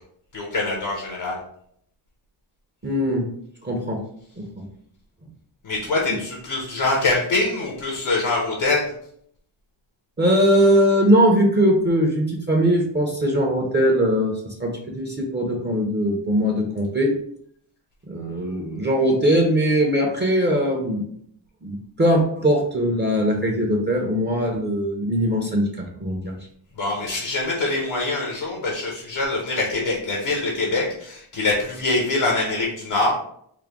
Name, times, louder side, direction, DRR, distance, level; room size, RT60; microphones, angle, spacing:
voice 1, 0.3-1.4 5.6-8.9 26.8-33.1, left 2 dB, 70° left, -1 dB, 1.0 m, -24 dB
voice 2, 2.8-3.2 3.6-4.0 4.4-4.6 10.2-17.1 18.1-21.1 21.6-26.3, equal, 25° right, 0 dB, 0.6 m, -20 dB
4.9 x 2.1 x 3.5 m, 0.67 s
wide cardioid pair, 115°, 48 cm